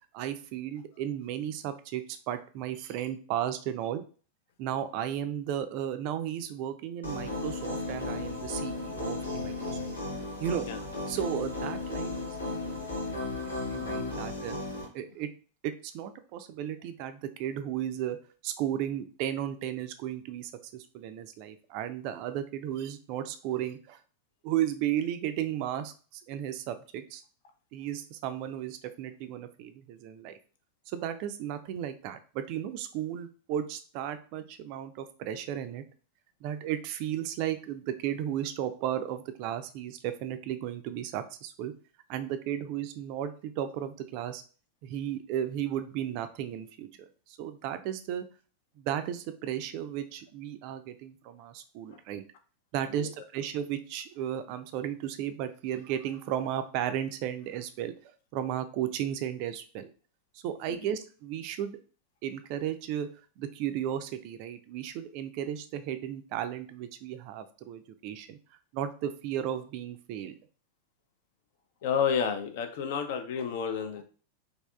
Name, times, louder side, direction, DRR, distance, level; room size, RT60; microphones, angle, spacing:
voice 1, 0.1-4.0 4.6-9.8 10.4-10.7 11.1-13.4 13.6-14.6 14.9-15.3 15.6-18.2 18.4-24.0 24.4-27.2 27.7-30.3 30.9-35.8 36.4-41.7 42.1-44.4 44.8-46.9 47.3-48.2 48.8-52.2 52.7-59.9 60.3-61.8 62.2-63.1 63.4-68.4 68.7-70.3, right 10 dB, 45° right, 10 dB, 0.3 m, -34 dB
sound 1, 7.0-14.8, left 2 dB, 80° left, 0.9 m, -35 dB
voice 2, 71.8-74.0, left 7 dB, 50° left, 8 dB, 0.4 m, -30 dB
3.4 x 2.4 x 2.3 m, 0.38 s
figure-of-eight pair, 90°, 0 cm